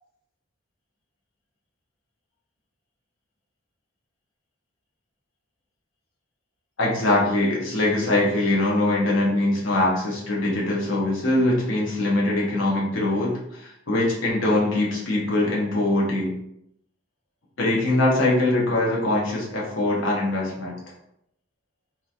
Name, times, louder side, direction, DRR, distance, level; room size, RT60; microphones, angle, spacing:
voice 1, 6.8-16.3 17.6-20.7, left 2 dB, 65° left, -3 dB, 0.8 m, -22 dB
2.9 x 2.3 x 2.5 m, 0.79 s
head